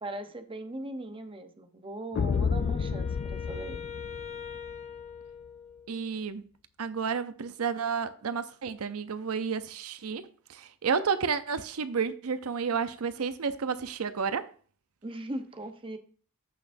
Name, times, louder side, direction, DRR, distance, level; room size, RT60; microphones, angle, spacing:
voice 1, 0.0-3.8 15.0-16.0, right 1 dB, 25° right, 1.0 m, -39 dB
sound 1, 2.2-4.8, left 6 dB, 45° left, 0.3 m, -30 dB
Wind instrument woodwind instrument, 2.3-6.2, left 6 dB, 30° left, 1.0 m, -43 dB
voice 2, 5.9-6.4 6.8-10.2 10.5-14.5, right 6 dB, 85° right, 0.7 m, -31 dB
14.5 x 6.2 x 2.7 m
head